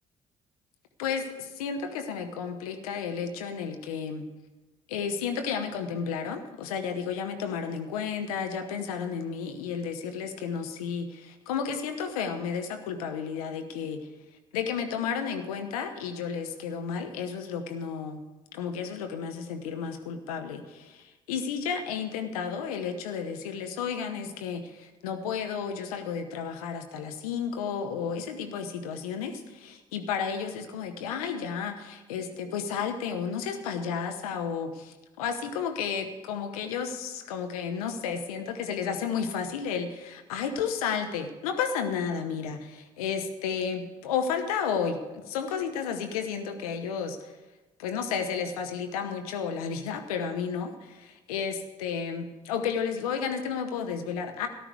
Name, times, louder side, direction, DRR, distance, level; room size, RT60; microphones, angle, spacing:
voice 1, 1.0-4.3 4.9-14.1 14.5-18.2 18.5-47.3 47.8-54.5, left 6 dB, 80° left, 7 dB, 1.0 m, -32 dB
13.5 x 11.0 x 4.7 m, 1.2 s
figure-of-eight pair, 45°, 19 cm